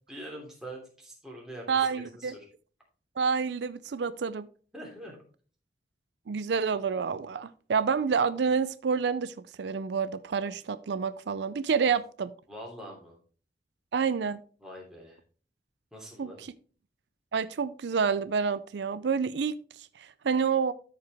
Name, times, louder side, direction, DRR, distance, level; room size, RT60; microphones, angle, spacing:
voice 1, 0.1-2.5 4.7-5.2 12.5-13.2 14.6-15.2 15.9-16.4, right 1 dB, 5° right, 2.8 m, -44 dB
voice 2, 1.7-2.3 3.2-4.5 6.3-12.3 13.9-14.4 16.2-16.3 17.3-19.6 20.0-20.7, right 6 dB, 75° right, 0.4 m, -28 dB
13.0 x 4.8 x 3.4 m
head